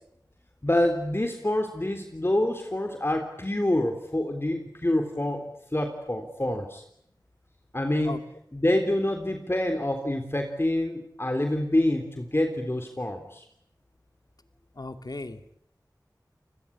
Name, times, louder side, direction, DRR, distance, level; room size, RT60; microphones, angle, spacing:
voice 1, 0.6-6.8 7.7-8.2 8.5-13.5, left 1 dB, 35° left, 5 dB, 3.5 m, -27 dB
voice 2, 14.8-15.6, left 2 dB, 65° left, 9 dB, 2.4 m, -37 dB
29.5 x 21.0 x 8.7 m, 0.71 s
wide cardioid pair, 45°, 7 cm